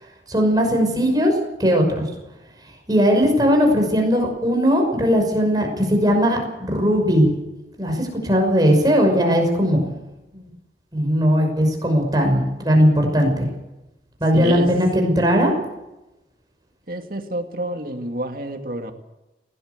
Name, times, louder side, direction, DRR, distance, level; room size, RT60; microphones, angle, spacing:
voice 1, 0.3-1.3 1.6-2.0 2.9-7.4 7.8-9.9 10.3-10.4 10.9-13.5 14.2-15.5, equal, 20° right, 2 dB, 5.8 m, -18 dB
voice 2, 14.3-14.7 16.9-18.9, right 1 dB, 55° right, 5 dB, 2.3 m, -28 dB
20.5 x 18.0 x 8.2 m, 0.98 s
head